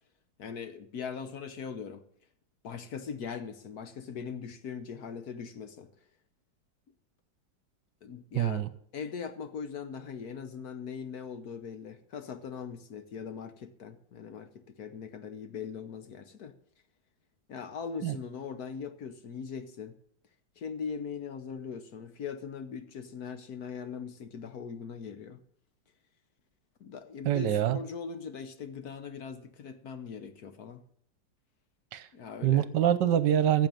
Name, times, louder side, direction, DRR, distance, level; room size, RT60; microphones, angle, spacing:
voice 1, 0.4-2.0 2.6-5.9 8.0-8.7 8.9-16.5 17.5-20.0 20.6-25.4 26.8-30.8 32.1-32.7, left 6 dB, 60° left, 1.4 m, -40 dB
voice 2, 8.4-8.7 18.0-18.2 27.2-27.8 31.9-32.1 32.4-33.7, right 10 dB, 70° right, 1.4 m, -25 dB
14.5 x 7.9 x 7.3 m
omnidirectional pair, 2.0 m